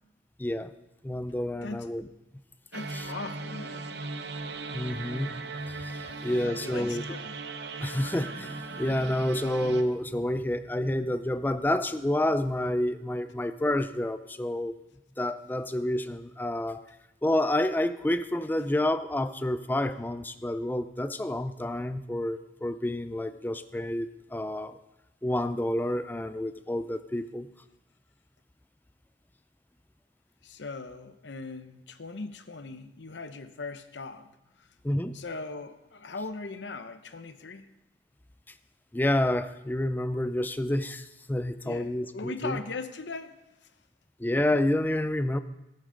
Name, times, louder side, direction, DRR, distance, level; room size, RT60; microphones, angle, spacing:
voice 1, 0.4-0.7 1.0-2.1 2.9-3.1 4.7-5.3 5.7-7.0 7.8-14.7 15.2-16.8 17.2-24.8 25.2-27.5 34.8-35.1 38.9-42.6 44.2-45.4, left 1 dB, 10° left, 11 dB, 0.4 m, -29 dB
voice 2, 2.7-4.0 6.1-7.4 30.4-34.3 34.6-34.7 35.1-37.7 41.6-43.3, left 3 dB, 75° left, 10 dB, 0.8 m, -39 dB
sound 1, 2.7-9.8, right 3 dB, 65° right, 0.7 m, -38 dB
13.5 x 9.9 x 3.8 m, 0.97 s
head